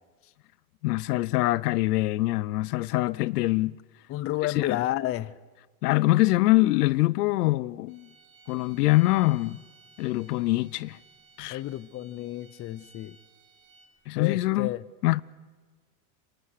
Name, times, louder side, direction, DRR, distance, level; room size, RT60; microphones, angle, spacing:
voice 1, 0.8-3.8 4.6-4.8 5.8-8.1 8.5-9.6 10.0-11.0 11.4-11.6 14.1-14.7 15.0-15.2, left 19 dB, 85° left, 0.7 m, -24 dB
voice 2, 4.1-5.3 11.5-13.2 14.2-14.8, left 15 dB, 30° left, 0.6 m, -31 dB
sound 1, 7.9-14.1, right 4 dB, 40° right, 5.1 m, -58 dB
27.0 x 25.5 x 4.9 m
supercardioid pair, 120°, 45 cm